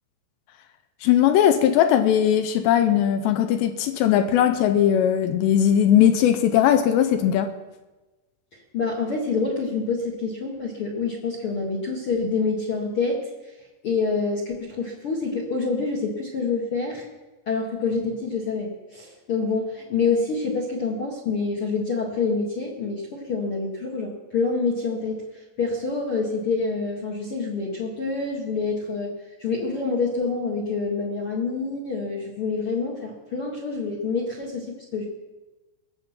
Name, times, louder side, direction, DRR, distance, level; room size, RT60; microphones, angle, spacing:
voice 1, 1.0-7.5, left 10 dB, 80° left, 8 dB, 2.9 m, -19 dB
voice 2, 8.7-13.2 13.8-17.0 17.5-25.2 25.6-29.1 29.4-35.1, left 4 dB, 50° left, -1 dB, 1.6 m, -27 dB
19.5 x 7.9 x 7.3 m, 1.1 s
omnidirectional pair, 5.3 m